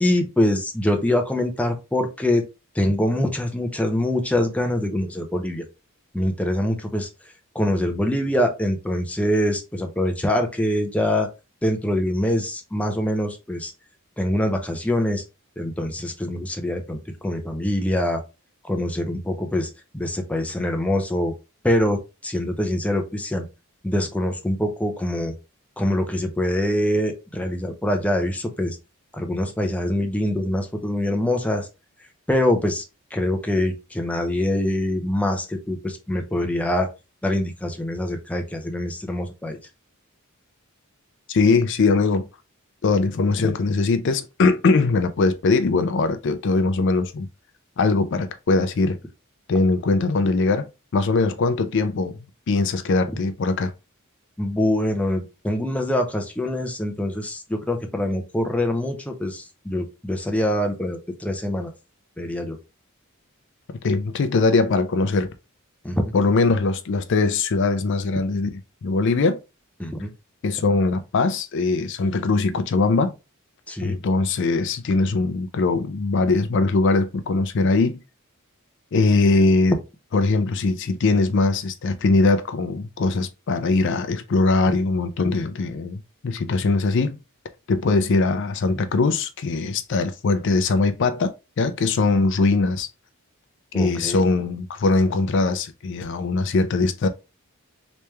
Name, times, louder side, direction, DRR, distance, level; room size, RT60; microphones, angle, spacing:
voice 1, 0.0-2.5 2.7-5.7 6.1-7.1 7.5-11.3 11.6-13.7 14.2-15.2 15.6-18.2 18.6-21.3 21.6-23.5 23.8-25.3 25.8-28.8 29.1-31.7 32.3-32.8 33.1-36.9 37.2-39.6 43.4-43.5 54.4-61.7 62.2-62.6 65.8-66.1 69.8-70.1 73.7-74.0 93.7-94.2, left 1 dB, 5° left, 0.5 m, -24 dB
voice 2, 41.3-42.3 42.8-47.3 47.8-49.0 49.5-50.7 50.9-52.2 52.5-53.7 63.8-65.3 66.1-69.4 70.4-73.1 73.8-78.0 78.9-79.8 80.1-87.2 87.7-92.9 93.7-97.1, left 3 dB, 55° left, 0.4 m, -21 dB
3.3 x 3.1 x 3.2 m
head